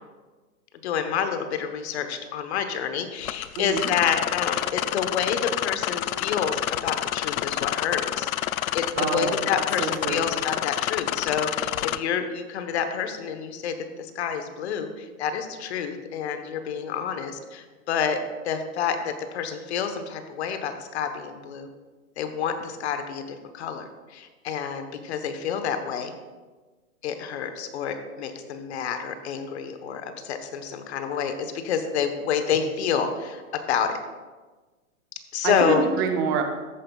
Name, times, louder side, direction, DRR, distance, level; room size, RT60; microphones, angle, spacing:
voice 1, 0.8-8.3 8.7-18.2 18.4-21.7 22.2-26.1 27.0-34.0 35.3-35.8, left 7 dB, 50° left, 8 dB, 1.1 m, -28 dB
sound 1, 3.2-12.0, left 12 dB, 75° left, 0.5 m, -28 dB
voice 2, 3.6-3.9 9.0-9.4 9.8-10.3 35.4-36.4, right 6 dB, 15° right, 4 dB, 0.5 m, -26 dB
13.5 x 9.1 x 2.4 m, 1.3 s
hypercardioid pair, 145°, 42 cm